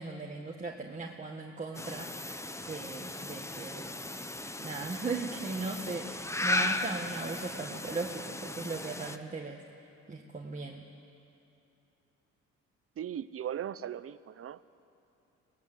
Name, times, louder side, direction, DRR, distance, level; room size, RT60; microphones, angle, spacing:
voice 1, 0.0-2.1 2.7-3.9 4.6-9.6 10.1-10.8, right 3 dB, 25° right, -1 dB, 1.5 m, -38 dB
sound 1, 1.7-9.2, left 2 dB, 10° left, 0.8 m, -36 dB
voice 2, 13.0-14.7, right 10 dB, 50° right, 16 dB, 0.7 m, -38 dB
23.5 x 17.5 x 7.7 m, 2.8 s
cardioid pair, 90°, 30 cm